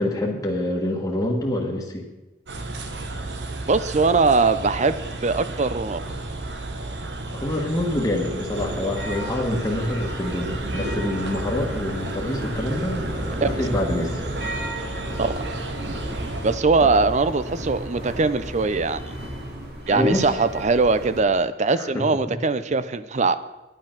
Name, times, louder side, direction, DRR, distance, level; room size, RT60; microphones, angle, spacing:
voice 1, 0.0-2.1 7.3-14.2 16.8-16.9 19.9-20.3 21.7-22.4, left 1 dB, 20° left, -3 dB, 1.4 m, -26 dB
sound 1, 2.5-16.6, right 2 dB, 90° right, 1.3 m, -33 dB
voice 2, 3.7-5.0 5.2-6.0 13.4-13.5 15.2-15.3 16.4-19.0 19.9-23.4, right 4 dB, 40° right, 14 dB, 0.6 m, -21 dB
sound 2, 8.5-21.2, right 1 dB, 65° right, 2.5 m, -33 dB
10.5 x 9.1 x 5.9 m, 1.1 s
head